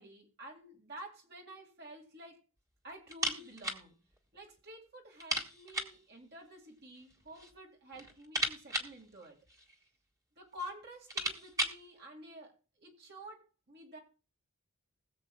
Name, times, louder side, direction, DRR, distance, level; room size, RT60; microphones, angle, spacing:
voice 1, 0.0-2.4 2.8-4.0 4.3-9.4 10.4-14.0, equal, 50° right, 2.1 m, -50 dB
sound 1, 3.1-3.9 4.1-4.2 4.6-4.7 5.2-6.0 7.0-7.6 7.9-9.9 10.6-10.7 10.9-11.9, right 1 dB, 15° right, 1.4 m, -37 dB
20.5 x 7.5 x 2.3 m
head